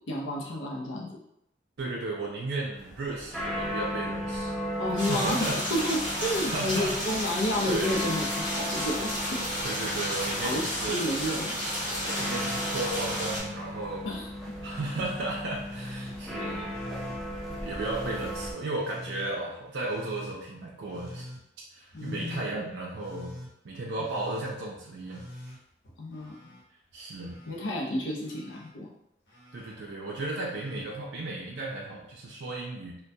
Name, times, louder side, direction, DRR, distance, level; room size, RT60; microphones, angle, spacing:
voice 1, 0.1-1.2 4.8-9.4 10.4-11.5 14.0-14.3 16.4-16.7 21.9-22.4 26.0-26.5 27.2-28.9, left 1 dB, 90° left, -2 dB, 0.6 m, -31 dB
voice 2, 1.8-5.6 6.2-7.1 7.7-8.1 9.6-11.1 11.8-14.1 14.6-16.6 17.5-21.3 21.7-23.3 23.6-25.2 26.9-27.4 29.5-33.0, right 2 dB, 65° right, -3 dB, 0.4 m, -35 dB
sound 1, 2.7-18.5, left 1 dB, ahead, 0.3 m, -36 dB
sound 2, 5.0-13.4, equal, 25° left, 0.9 m, -32 dB
Telephone, 15.6-16.2 16.6-17.2 17.7-18.2 18.8-19.3 19.8-20.3 20.8-21.4 21.9-22.4 22.9-23.5 24.0-24.5 25.0-26.6 26.9-27.6 28.2-28.7 29.2-29.7 30.3-30.8 32.0-32.1, equal, 55° left, 0.8 m, -45 dB
2.2 x 2.2 x 2.6 m, 0.80 s
head